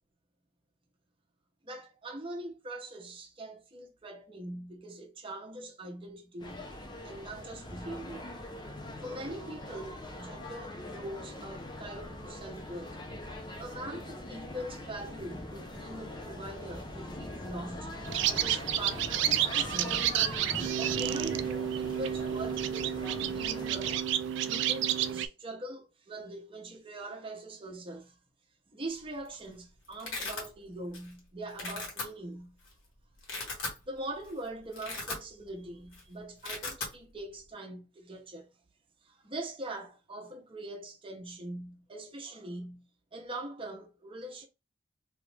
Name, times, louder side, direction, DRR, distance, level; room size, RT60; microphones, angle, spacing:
voice 1, 1.6-6.7 7.0-8.3 9.0-13.0 13.6-17.9 18.3-20.1 20.8-24.0 24.4-28.2 28.7-32.6 33.9-38.5 39.0-42.9 43.1-44.5, right 1 dB, 25° right, 0.8 m, -42 dB
sound 1, 6.4-24.0, left 1 dB, 20° left, 0.6 m, -42 dB
sound 2, 18.0-25.3, right 10 dB, 60° right, 0.3 m, -30 dB
Domestic sounds home sounds, 29.0-29.3 29.6-30.5 30.9-31.2 31.5-32.0 32.7-32.8 33.1-33.8 34.2-34.3 34.6-35.6 35.8-36.0 36.3-36.9, left 3 dB, 70° left, 1.5 m, -37 dB
3.1 x 2.5 x 3.3 m
head